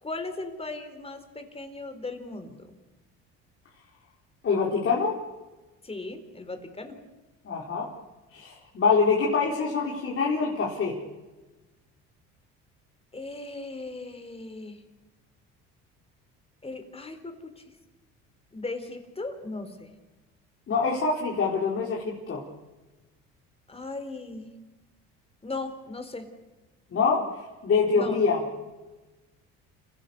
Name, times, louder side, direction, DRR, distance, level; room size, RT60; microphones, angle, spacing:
voice 1, 0.0-2.8 5.8-7.0 13.1-14.8 16.6-17.6 18.5-19.9 23.7-24.6 25.4-26.3 27.9-28.2, left 2 dB, 20° left, 8 dB, 4.3 m, -37 dB
voice 2, 4.4-5.2 7.4-7.9 8.3-11.0 20.7-22.4 26.9-28.4, left 5 dB, 45° left, -4 dB, 4.8 m, -25 dB
30.0 x 16.0 x 6.8 m, 1.1 s
supercardioid pair, 80°, 30 cm